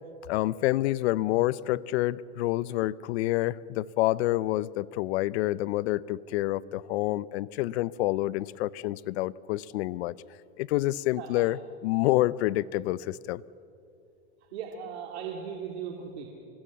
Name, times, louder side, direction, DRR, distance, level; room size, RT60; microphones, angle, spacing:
voice 1, 0.3-10.2 10.6-13.4, left 16 dB, 75° left, 21 dB, 0.7 m, -28 dB
voice 2, 14.5-16.3, right 7 dB, 85° right, 1 dB, 2.9 m, -38 dB
26.0 x 20.0 x 7.5 m, 2.6 s
supercardioid pair, 110°, 32 cm